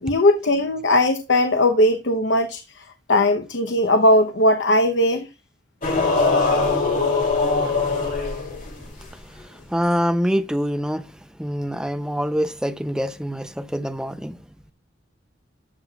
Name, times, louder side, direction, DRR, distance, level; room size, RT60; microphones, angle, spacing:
voice 1, 0.0-5.3, left 1 dB, 80° left, 0.8 m, -19 dB
sound 1, 5.8-9.1, left 3 dB, 45° left, 2.6 m, -21 dB
voice 2, 9.4-11.1 11.4-14.4, equal, 5° right, 0.5 m, -25 dB
12.5 x 7.6 x 2.3 m
head